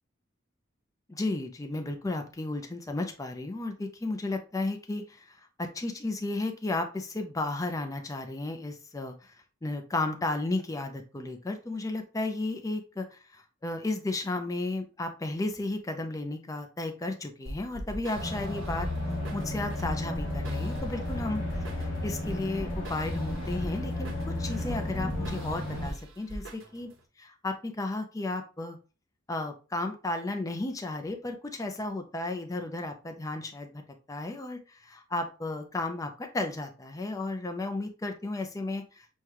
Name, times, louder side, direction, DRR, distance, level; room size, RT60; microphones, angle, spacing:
voice 1, 1.1-9.3 9.6-18.9 19.3-21.4 21.8-24.1 24.4-26.9 27.2-28.8 29.3-33.8 34.1-39.2, left 2 dB, 15° left, 5 dB, 0.4 m, -33 dB
sound 1, 17.5-27.0, equal, 65° right, 0.9 m, -41 dB
sound 2, 18.1-25.9, left 1 dB, 40° left, 2.2 m, -33 dB
6.3 x 2.3 x 2.9 m, 0.34 s
head